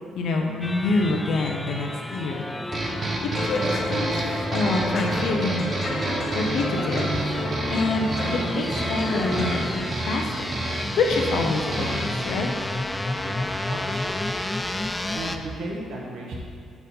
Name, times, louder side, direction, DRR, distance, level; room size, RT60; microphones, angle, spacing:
voice 1, 0.2-2.4 2.9-3.0 3.4-5.7 6.1-7.1 7.4-8.1 8.5-10.5 11.0-12.5, left 3 dB, 75° left, 1 dB, 0.7 m, -26 dB
sound 1, 0.6-15.4, left 1 dB, 10° left, 0.4 m, -32 dB
sound 2, 2.7-12.3, right 2 dB, 40° right, 1.0 m, -30 dB
sound 3, 3.3-9.8, left 1 dB, 40° left, 1.4 m, -31 dB
voice 2, 13.2-14.2 15.1-16.4, right 1 dB, 70° right, -2 dB, 1.3 m, -36 dB
7.0 x 4.4 x 5.4 m, 2.4 s
cardioid pair, 90°, 0 cm